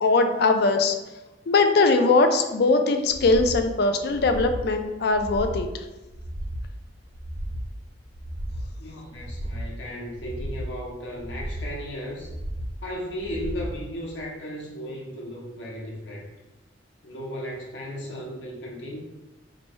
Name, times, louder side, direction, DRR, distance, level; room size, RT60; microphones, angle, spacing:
voice 1, 0.0-1.0 1.5-5.7, left 3 dB, 60° left, 7 dB, 0.4 m, -21 dB
sound 1, 3.1-3.6 4.1-4.7 5.1-5.7 6.1-6.7 7.1-7.7 8.1-8.7 9.1-9.7 10.1-10.7 11.1-11.7 12.1-12.7 13.2-13.7 14.2-14.3, equal, 85° right, 1.0 m, -34 dB
voice 2, 8.8-12.3 12.8-16.3 17.0-19.0, equal, 75° left, -3 dB, 1.0 m, -35 dB
3.0 x 2.6 x 4.2 m, 1.0 s
head